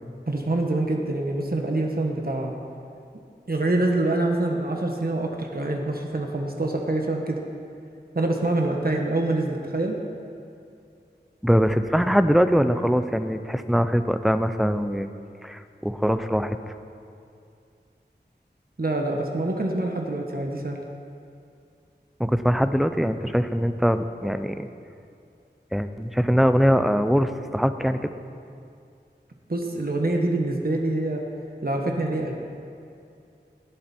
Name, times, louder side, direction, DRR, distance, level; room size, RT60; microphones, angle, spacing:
voice 1, 0.3-2.5 3.5-7.4 8.1-10.0 18.8-20.8 29.5-31.2 31.6-32.3, right 2 dB, 55° right, 1 dB, 1.4 m, -25 dB
voice 2, 11.4-15.1 15.4-16.6 22.2-24.7 25.7-28.1, equal, ahead, 10 dB, 0.7 m, -22 dB
17.5 x 10.5 x 4.5 m, 2.5 s
wide cardioid pair, 50°, 18 cm